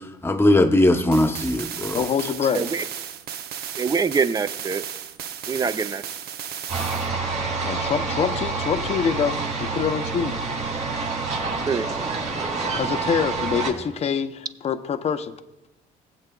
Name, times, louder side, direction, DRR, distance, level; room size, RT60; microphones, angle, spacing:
voice 1, 0.2-2.3, left 1 dB, 15° left, 7 dB, 0.9 m, -20 dB
sound 1, 1.1-7.1, right 9 dB, 70° right, 0.7 m, -35 dB
voice 2, 1.9-2.7 7.6-10.3 12.7-15.3, left 7 dB, 40° left, 9 dB, 0.6 m, -25 dB
voice 3, 3.8-4.8 5.5-6.0 11.7-11.9, right 5 dB, 20° right, 12 dB, 0.5 m, -24 dB
sound 2, 6.7-13.7, right 4 dB, 45° right, 2.4 m, -27 dB
19.0 x 7.9 x 2.3 m, 1.0 s
cardioid pair, 110°, 17 cm